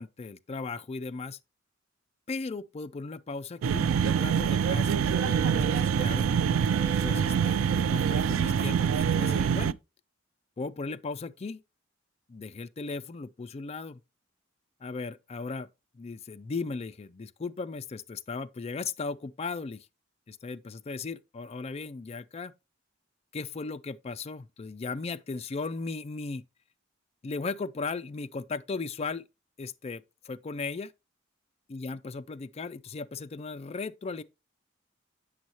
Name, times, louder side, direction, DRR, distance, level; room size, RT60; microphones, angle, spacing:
voice 1, 0.0-1.4 2.3-6.3 7.0-9.8 10.6-11.6 12.3-14.0 14.8-15.7 15.9-19.9 20.3-22.5 23.3-26.4 27.2-29.3 29.6-30.9 31.7-34.2, left 4 dB, 30° left, 0.4 m, -37 dB
sound 1, 3.6-9.7, right 7 dB, 85° right, 0.3 m, -25 dB
sound 2, 4.9-8.6, right 6 dB, 55° right, 1.3 m, -43 dB
7.8 x 6.2 x 2.9 m
head